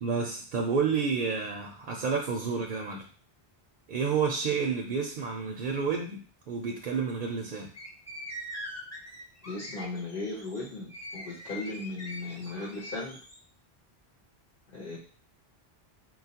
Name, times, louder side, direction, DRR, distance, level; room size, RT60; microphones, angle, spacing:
voice 1, 0.0-3.1 3.9-7.7, right 5 dB, 60° right, 1 dB, 0.6 m, -30 dB
sound 1, 7.7-13.4, equal, 25° left, 0.4 m, -43 dB
voice 2, 9.5-13.2 14.7-15.0, left 2 dB, 55° left, -5 dB, 1.0 m, -37 dB
4.2 x 2.3 x 2.8 m, 0.40 s
omnidirectional pair, 1.1 m